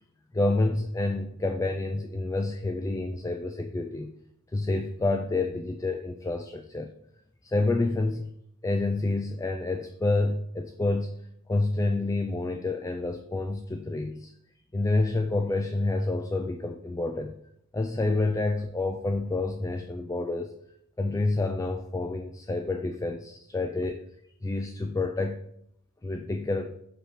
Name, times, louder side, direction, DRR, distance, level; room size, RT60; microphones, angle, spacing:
voice 1, 0.3-4.1 4.5-6.9 7.4-8.3 8.6-11.2 11.5-14.3 14.7-17.4 17.7-20.5 21.0-24.0 24.4-25.5 26.0-26.8, left 2 dB, 15° left, 6 dB, 0.3 m, -28 dB
5.8 x 5.5 x 4.8 m, 0.76 s
head